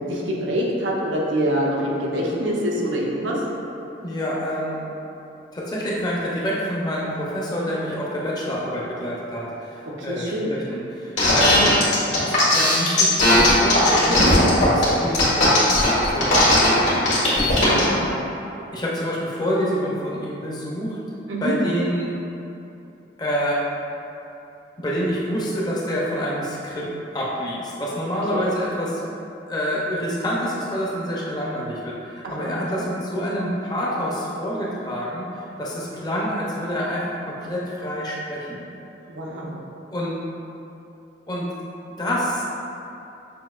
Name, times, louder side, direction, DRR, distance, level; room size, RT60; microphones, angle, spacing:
voice 1, 0.1-3.4 10.0-10.6 14.1-14.3 17.5-18.0 21.3-21.5 28.3-28.4 32.2-32.9 39.1-39.6, equal, 85° right, -3 dB, 0.7 m, -25 dB
voice 2, 4.0-4.9 5.5-17.3 17.6-18.2 18.7-22.2 23.2-23.6 24.8-29.0 29.5-35.3 35.6-38.6 39.9-40.2 41.3-41.5 42.0-42.4, equal, 20° left, -5 dB, 0.5 m, -27 dB
sound 1, 11.2-17.9, left 1 dB, 80° left, 1.4 m, -17 dB
6.2 x 2.7 x 2.3 m, 2.8 s
head